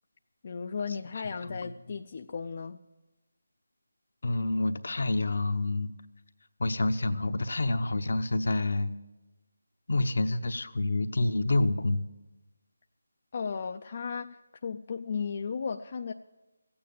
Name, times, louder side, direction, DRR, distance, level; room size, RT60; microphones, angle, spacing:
voice 1, 0.4-2.8 13.3-16.1, left 5 dB, 40° left, 6 dB, 0.4 m, -35 dB
voice 2, 4.2-5.9 6.6-8.9 9.9-12.0, left 2 dB, 65° left, 10 dB, 0.8 m, -28 dB
15.0 x 8.7 x 7.0 m, 1.1 s
figure-of-eight pair, 160°, 0 cm